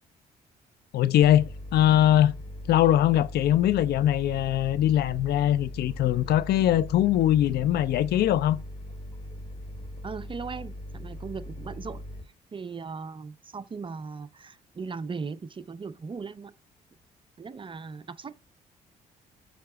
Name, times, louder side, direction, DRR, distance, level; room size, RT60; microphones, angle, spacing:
voice 1, 0.9-2.4 2.7-8.6, left 12 dB, 50° left, 0.4 m, -22 dB
sound 1, 1.2-12.2, equal, 25° left, 3.2 m, -40 dB
voice 2, 10.0-12.0 12.5-16.5 17.4-18.3, right 5 dB, 25° right, 0.5 m, -38 dB
6.5 x 3.0 x 4.8 m
figure-of-eight pair, 45°, 21 cm